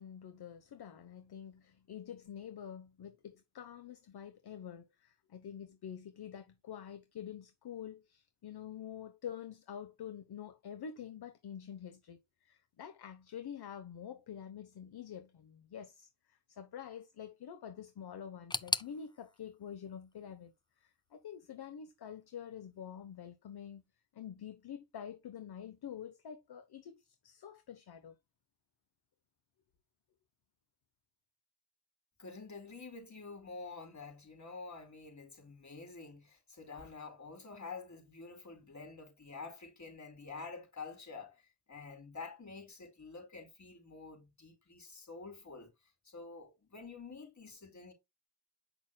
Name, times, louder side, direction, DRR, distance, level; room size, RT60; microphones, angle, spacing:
voice 1, 0.0-23.8 24.1-28.1, left 8 dB, 65° left, 1.1 m, -47 dB
sound 1, 18.5-21.4 21.6-22.4 22.7-22.8 23.7-23.8, left 2 dB, 10° left, 0.6 m, -41 dB
voice 2, 32.2-45.7 46.0-47.9, left 4 dB, 45° left, 4.4 m, -48 dB
7.9 x 6.0 x 2.3 m
cardioid pair, 55°, 41 cm